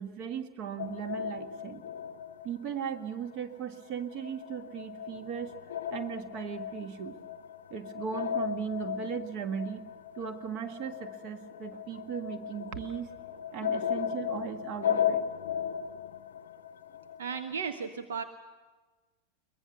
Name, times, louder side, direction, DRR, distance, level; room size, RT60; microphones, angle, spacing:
voice 1, 0.0-1.8 2.4-5.5 5.9-7.2 7.7-9.9 10.2-13.1 13.5-15.2, right 8 dB, 40° right, 9 dB, 1.5 m, -37 dB
sound 1, 0.8-3.4 3.6-17.5, left 8 dB, 60° left, 0.6 m, -36 dB
voice 2, 17.2-18.2, right 6 dB, 65° right, 8 dB, 1.0 m, -35 dB
22.5 x 19.5 x 7.0 m, 1.3 s
figure-of-eight pair, 90°, 0 cm